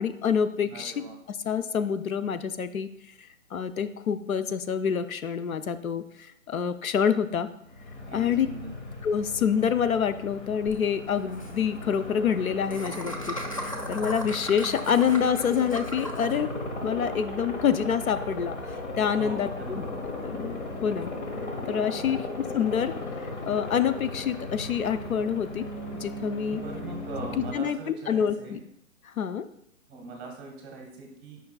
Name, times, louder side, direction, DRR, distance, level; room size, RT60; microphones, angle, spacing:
voice 1, 0.0-2.9 3.2-7.5 8.1-8.5 9.0-16.5 16.8-19.8 20.2-21.1 21.7-25.7 26.0-26.6 27.4-28.6 29.0-29.5, left 7 dB, 80° left, 11 dB, 0.5 m, -27 dB
voice 2, 0.6-1.2 8.1-8.7 19.2-19.8 22.0-22.2 26.5-28.6 29.9-31.4, right 3 dB, 15° right, 0 dB, 1.0 m, -41 dB
Aircraft, 7.6-27.5, left 1 dB, 55° left, 1.3 m, -36 dB
Laughter, 10.7-10.8 11.0-11.1 11.3-11.5 12.7-16.4, equal, 25° left, 0.4 m, -37 dB
8.5 x 5.3 x 2.3 m, 0.74 s
figure-of-eight pair, 135°, 42 cm